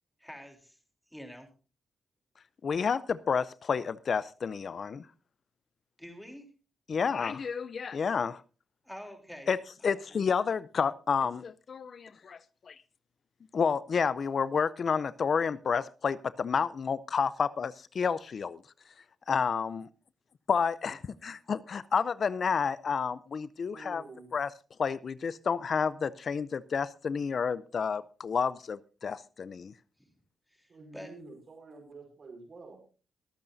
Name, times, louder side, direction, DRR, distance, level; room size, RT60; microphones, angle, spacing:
voice 1, 0.2-0.8 1.1-1.5 6.0-6.5 8.8-9.5 9.8-9.9 30.0-30.1 30.5-31.1, equal, 5° left, 3.5 m, -46 dB
voice 2, 2.6-5.0 6.9-8.4 9.5-9.6 9.8-12.8 13.5-18.6 19.3-19.9 20.5-24.0 24.3-24.5 24.8-29.7, left 6 dB, 60° left, 0.5 m, -30 dB
voice 3, 23.7-24.3 30.7-32.8, right 3 dB, 55° right, 5.1 m, -48 dB
24.0 x 8.7 x 2.7 m
cardioid pair, 65°, 0 cm